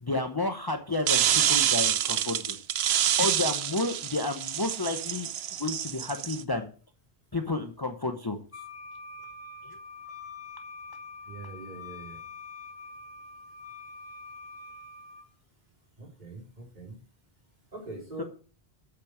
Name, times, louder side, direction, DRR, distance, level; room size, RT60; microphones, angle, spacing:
voice 1, 0.0-2.6 2.9-5.3 5.6-6.7 7.3-8.4 9.6-9.8 18.2-18.3, left 2 dB, 25° left, 6 dB, 0.8 m, -31 dB
sound 1, 1.1-6.4, right 10 dB, 75° right, 0.9 m, -27 dB
Wind instrument woodwind instrument, 8.5-15.3, left 4 dB, 90° left, 2.2 m, -45 dB
voice 2, 11.2-12.2 16.0-17.0 17.7-18.2, right 3 dB, 40° right, -3 dB, 4.3 m, -43 dB
8.5 x 6.0 x 6.4 m, 0.38 s
omnidirectional pair, 1.1 m